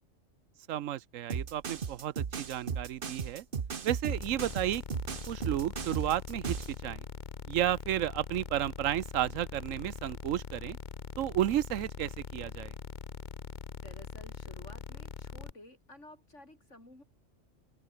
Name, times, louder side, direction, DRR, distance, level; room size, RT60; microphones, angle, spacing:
voice 1, 0.7-3.4 3.8-4.8 5.3-7.0 7.5-10.8 11.2-12.7, right 12 dB, 85° right, 1.1 m, -32 dB
sound 1, 1.3-6.7, right 6 dB, 45° right, 1.2 m, -36 dB
sound 2, 4.1-15.5, left 5 dB, 40° left, 1.1 m, -43 dB
voice 2, 13.8-17.0, left 1 dB, 65° left, 7.3 m, -53 dB
open air
omnidirectional pair, 1.3 m